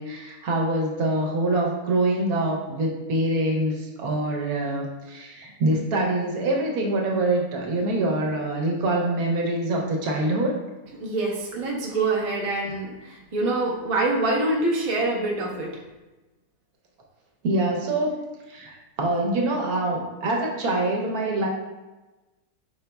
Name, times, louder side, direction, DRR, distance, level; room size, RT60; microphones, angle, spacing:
voice 1, 0.0-10.5 17.4-18.1 18.5-21.5, right 2 dB, 70° right, 0 dB, 1.2 m, -25 dB
voice 2, 11.0-15.7, right 2 dB, 40° right, -3 dB, 0.4 m, -25 dB
5.6 x 3.9 x 2.3 m, 1.1 s
omnidirectional pair, 1.7 m